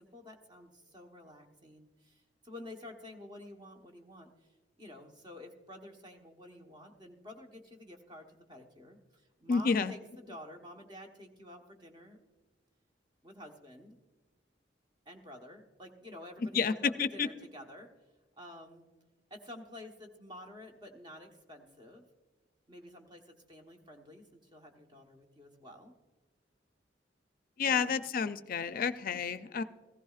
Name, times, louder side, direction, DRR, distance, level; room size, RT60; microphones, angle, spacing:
voice 1, 0.0-4.3 4.8-12.2 13.2-14.0 15.1-17.9 18.4-18.8 19.3-22.0 22.7-25.9 27.7-28.0, left 1 dB, 25° right, 2 dB, 1.2 m, -50 dB
voice 2, 9.5-9.9 16.4-17.3 27.6-29.6, left 5 dB, 50° left, 12 dB, 0.5 m, -30 dB
15.5 x 14.5 x 2.4 m, 1.3 s
head